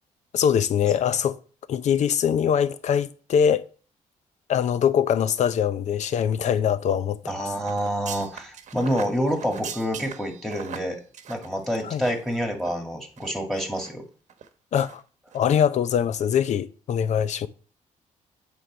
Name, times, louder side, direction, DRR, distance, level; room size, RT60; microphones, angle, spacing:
voice 1, 0.3-1.4 1.7-3.7 4.5-7.2 11.9-12.0 14.7-15.0 15.3-17.5, left 8 dB, 60° left, 0.6 m, -22 dB
voice 2, 7.2-11.0 11.3-14.0, equal, ahead, 2.0 m, -27 dB
sound 1, 7.6-12.3 12.6-12.7 13.2-13.9 14.3-14.5 14.8-15.0 15.3-15.4, right 8 dB, 65° right, 1.0 m, -40 dB
8.3 x 3.9 x 6.2 m
cardioid pair, 120°, 14 cm